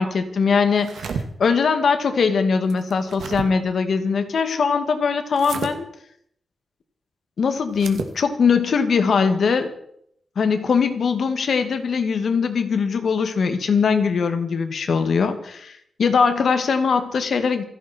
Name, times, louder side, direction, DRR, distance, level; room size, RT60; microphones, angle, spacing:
voice 1, 0.0-5.9 7.4-9.7 10.4-17.6, left 5 dB, 70° left, 8 dB, 2.1 m, -21 dB
sound 1, 0.7-1.2 2.7-3.5 5.3-5.7 7.7-8.1, right 6 dB, 90° right, 2.0 m, -31 dB
28.0 x 11.0 x 4.5 m, 0.69 s
wide cardioid pair, 95°, 0 cm